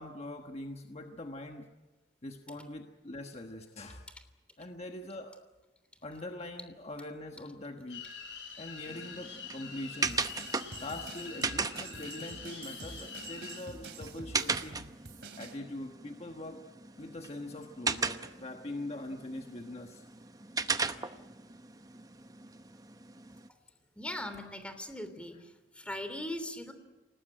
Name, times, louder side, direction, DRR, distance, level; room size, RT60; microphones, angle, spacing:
voice 1, 0.0-1.7 2.2-4.1 4.6-5.4 6.0-8.0 8.6-10.2 10.8-14.9 15.3-16.6 17.0-20.0, left 1 dB, 35° left, 4 dB, 1.3 m, -43 dB
sound 1, 7.9-13.6, left 6 dB, 85° left, 7.1 m, -45 dB
sound 2, 8.9-23.5, right 4 dB, 20° right, 0.9 m, -38 dB
sound 3, 10.0-15.6, right 4 dB, 70° right, 2.8 m, -47 dB
voice 2, 24.0-25.4 25.7-26.7, left 1 dB, 5° left, 8 dB, 3.1 m, -39 dB
28.0 x 19.0 x 9.0 m, 1.2 s
head